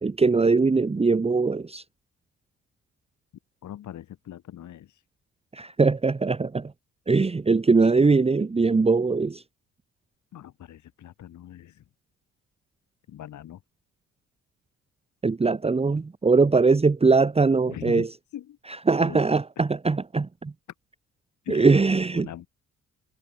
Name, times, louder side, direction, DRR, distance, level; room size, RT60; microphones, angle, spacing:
voice 1, 0.0-1.8 5.5-6.7 7.1-9.4 15.2-18.1 18.9-20.5 21.5-22.4, right 4 dB, 20° right, 1.2 m, -21 dB
voice 2, 3.6-5.0 10.3-11.8 13.1-13.6 17.7-18.6 19.0-19.3 19.5-19.7 21.4-22.5, left 11 dB, 70° left, 7.0 m, -41 dB
cardioid pair, 90°, 30 cm